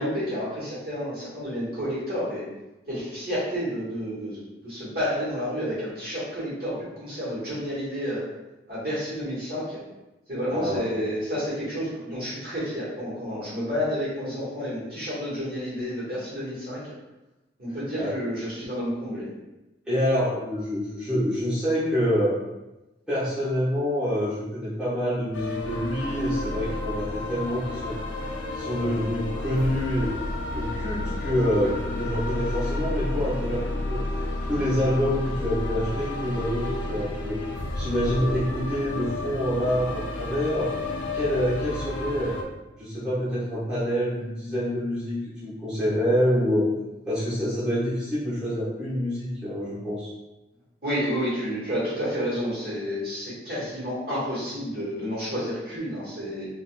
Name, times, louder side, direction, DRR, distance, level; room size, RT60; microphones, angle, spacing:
voice 1, 0.0-2.5 2.9-8.2 8.7-9.8 10.3-16.8 17.6-19.2 50.8-56.5, equal, 55° right, -9 dB, 1.5 m, -30 dB
voice 2, 10.5-10.8 18.0-18.2 19.9-22.4 23.1-27.9 28.5-30.1 30.5-34.0 34.5-37.4 37.7-40.7 41.1-42.4 42.8-46.7 47.1-50.1, equal, 5° right, -13 dB, 1.2 m, -26 dB
sound 1, 25.3-42.4, left 2 dB, 85° left, 0.4 m, -31 dB
3.8 x 2.4 x 2.3 m, 1.0 s
head